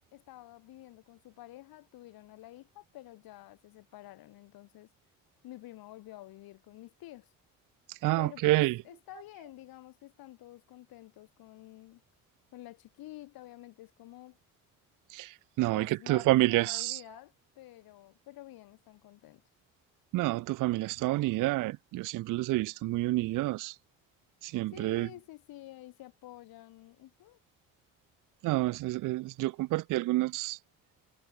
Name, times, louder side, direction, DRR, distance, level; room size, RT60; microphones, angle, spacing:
voice 1, 0.1-4.9 5.4-7.3 8.2-12.0 12.5-14.4 15.7-19.4 24.7-27.4, left 16 dB, 65° left, 1.7 m, -50 dB
voice 2, 7.9-8.8 15.1-17.0 20.1-23.8 24.4-25.1 28.4-30.6, right 18 dB, 55° right, 0.5 m, -29 dB
figure-of-eight pair, 40°, 39 cm